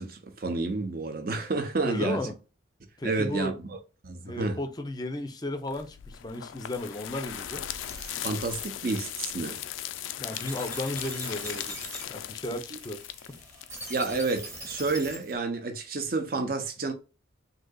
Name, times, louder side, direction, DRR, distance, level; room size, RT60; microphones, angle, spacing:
voice 1, 0.0-2.2 3.0-3.8 4.0-4.6 8.2-9.6 12.7-12.8 13.9-16.9, right 3 dB, 50° right, 0.7 m, -30 dB
voice 2, 1.8-2.3 3.0-3.6 4.3-7.6 10.2-11.8 12.1-13.0 13.3-13.4, left 1 dB, 20° left, 0.5 m, -34 dB
sound 1, 5.7-14.5, left 11 dB, 85° left, 0.3 m, -38 dB
sound 2, 7.3-15.4, right 1 dB, 15° right, 1.1 m, -43 dB
3.8 x 2.8 x 2.2 m
head